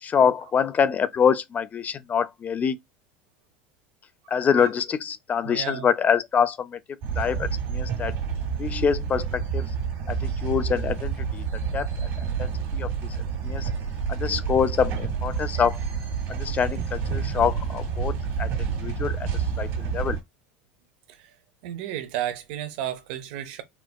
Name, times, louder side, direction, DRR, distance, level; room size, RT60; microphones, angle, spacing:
voice 1, 0.0-2.8 4.3-6.8 7.2-8.2 8.6-9.7 10.1-11.4 11.7-13.2 13.4-13.7 14.1-15.8 16.3-19.3 19.6-20.2, left 7 dB, 30° left, 0.4 m, -25 dB
voice 2, 5.4-5.9 21.2-21.3 21.6-23.6, right 11 dB, 70° right, 0.7 m, -32 dB
sound 1, 7.0-20.2, right 6 dB, 55° right, 1.6 m, -29 dB
4.3 x 2.1 x 2.3 m
hypercardioid pair, 95°, 5 cm